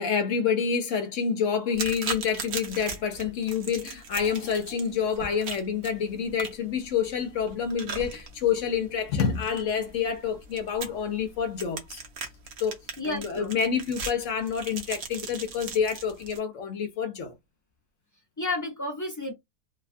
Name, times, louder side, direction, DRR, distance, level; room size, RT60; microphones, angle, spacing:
voice 1, 0.0-12.0 12.6-12.8 13.0-17.3, left 7 dB, 65° left, 0.8 m, -28 dB
sound 1, 1.7-16.4, right 4 dB, 65° right, 1.1 m, -39 dB
voice 2, 13.0-13.5 18.4-19.3, left 2 dB, 30° left, 0.3 m, -31 dB
3.1 x 2.2 x 2.5 m
omnidirectional pair, 1.7 m